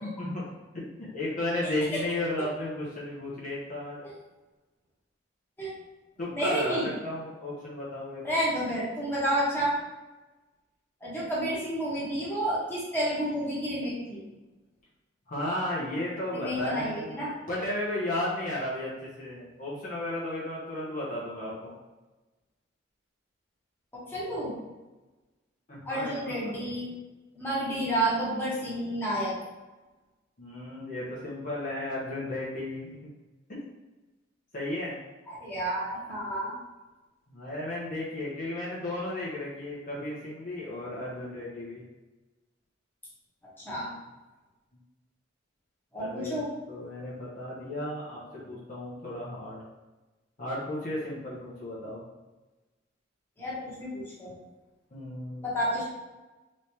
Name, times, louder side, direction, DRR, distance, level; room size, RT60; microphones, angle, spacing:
voice 1, 0.0-4.1 6.2-8.4 15.3-21.7 25.7-26.6 30.4-33.1 33.5-33.6 34.5-35.0 37.3-41.8 43.7-44.0 46.0-46.4 46.7-49.6 50.4-52.0 54.9-55.4, left 1 dB, 45° left, -7 dB, 0.9 m, -34 dB
voice 2, 6.3-6.9 8.2-9.8 11.0-14.2 16.3-17.3 24.1-24.5 25.8-26.9 27.3-29.3 35.3-36.5 43.6-43.9 45.9-46.5 53.4-54.3 55.4-55.9, right 1 dB, 10° left, -8 dB, 1.1 m, -30 dB
3.3 x 3.1 x 2.8 m, 1.2 s
head